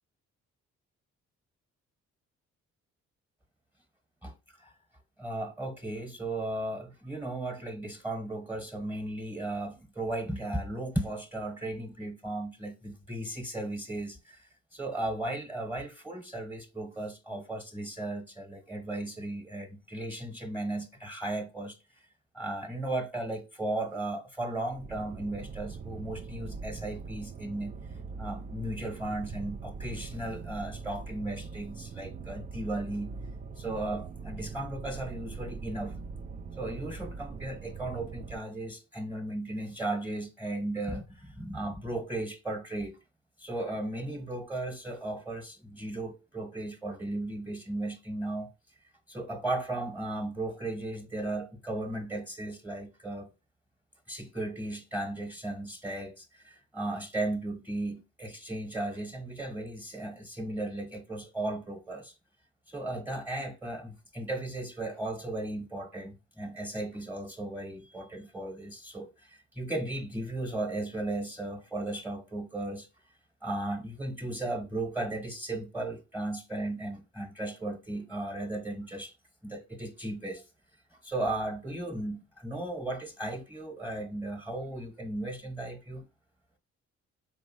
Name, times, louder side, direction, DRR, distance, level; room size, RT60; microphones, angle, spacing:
voice 1, 5.2-21.8 22.3-27.8 28.2-33.1 33.6-36.0 36.6-43.0 43.4-48.5 49.1-53.3 54.1-62.1 62.7-72.9 73.4-79.1 79.4-80.4 81.0-86.0, right 2 dB, 5° right, 1.1 m, -36 dB
sound 1, 24.7-38.4, right 5 dB, 25° right, 0.4 m, -42 dB
4.5 x 3.1 x 2.8 m
supercardioid pair, 50°, 31 cm